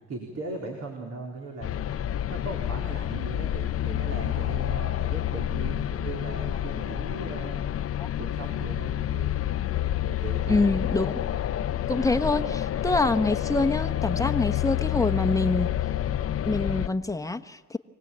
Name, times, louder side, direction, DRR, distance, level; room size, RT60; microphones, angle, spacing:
voice 1, 0.1-1.7 2.3-7.9 8.2-9.3 10.1-10.7, right 2 dB, 60° right, 1 dB, 4.1 m, -38 dB
sound 1, 1.6-16.9, left 12 dB, 50° left, 0.7 m, -28 dB
voice 2, 10.5-11.1 11.9-15.7 16.4-17.8, left 3 dB, 10° left, 8 dB, 1.1 m, -25 dB
25.5 x 19.0 x 8.7 m, 1.3 s
cardioid pair, 90°, 30 cm